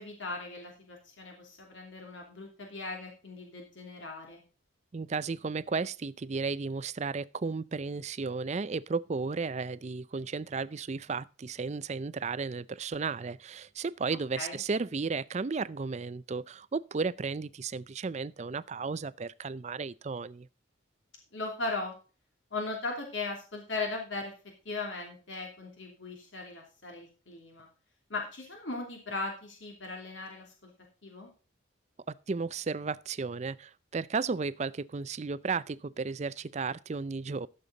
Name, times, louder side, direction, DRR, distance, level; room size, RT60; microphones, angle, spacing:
voice 1, 0.0-4.4 14.4-14.6 21.3-21.9 22.5-24.3 24.6-27.7 28.1-30.7 31.0-31.3, left 3 dB, 75° left, 2.7 m, -38 dB
voice 2, 4.9-20.5 32.3-37.5, right 4 dB, 35° right, 0.4 m, -34 dB
13.5 x 6.8 x 3.9 m
head